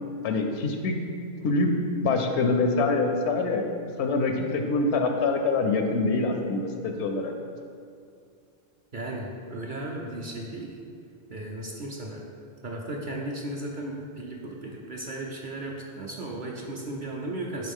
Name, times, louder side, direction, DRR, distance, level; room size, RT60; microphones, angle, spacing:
voice 1, 0.2-1.0 1.4-1.7 2.0-3.6 4.0-7.3, left 3 dB, 85° left, 4 dB, 0.9 m, -25 dB
voice 2, 8.9-10.7 11.3-12.2 12.6-17.7, right 1 dB, 55° right, -2 dB, 0.7 m, -35 dB
9.6 x 3.8 x 3.6 m, 2.3 s
omnidirectional pair, 1.1 m